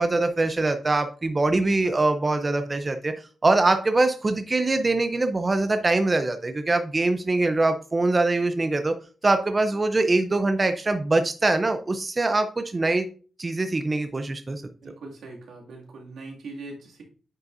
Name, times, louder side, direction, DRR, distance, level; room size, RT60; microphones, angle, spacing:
voice 1, 0.0-8.9 9.2-13.1 13.4-14.6, right 2 dB, 20° right, 8 dB, 0.5 m, -23 dB
voice 2, 14.8-17.0, right 3 dB, 85° right, -1 dB, 2.1 m, -41 dB
9.4 x 5.4 x 2.5 m, 0.38 s
wide cardioid pair, 160°, 0 cm